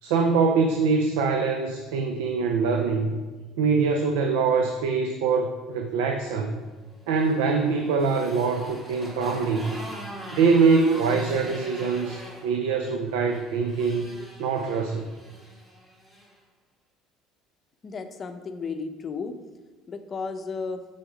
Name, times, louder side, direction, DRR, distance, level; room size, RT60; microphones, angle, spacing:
voice 1, 0.0-3.2 3.6-6.6 7.1-9.7 10.3-14.1 14.4-15.1, right 4 dB, 85° right, 4 dB, 0.5 m, -23 dB
Motorcycle, 6.9-16.3, equal, 20° right, 2.2 m, -42 dB
voice 2, 17.8-19.4 19.9-20.8, left 4 dB, 35° left, 7 dB, 0.6 m, -33 dB
6.1 x 4.2 x 5.0 m, 1.3 s
supercardioid pair, 85°, 0 cm